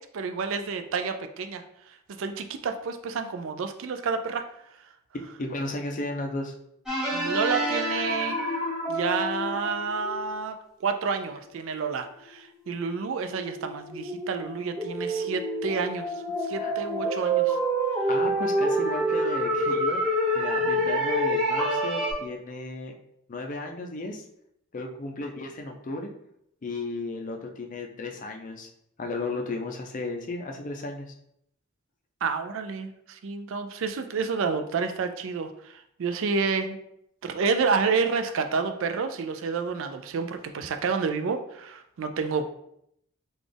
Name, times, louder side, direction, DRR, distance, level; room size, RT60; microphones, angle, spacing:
voice 1, 0.1-1.6 2.2-4.4 7.1-8.4 8.9-10.5 10.8-16.1 16.4-17.6 20.6-20.9 32.2-36.8 37.2-42.5, right 5 dB, 65° right, 7 dB, 0.4 m, -29 dB
voice 2, 5.4-6.5 16.6-16.7 18.1-20.0 20.3-22.9 23.3-24.3 24.7-26.1 26.6-28.7 29.0-31.1, left 2 dB, 40° left, 2 dB, 0.4 m, -34 dB
sound 1, 6.9-10.3 12.0-12.1 12.7-22.1, right 1 dB, 5° right, 0.8 m, -27 dB
4.0 x 2.4 x 3.3 m, 0.74 s
head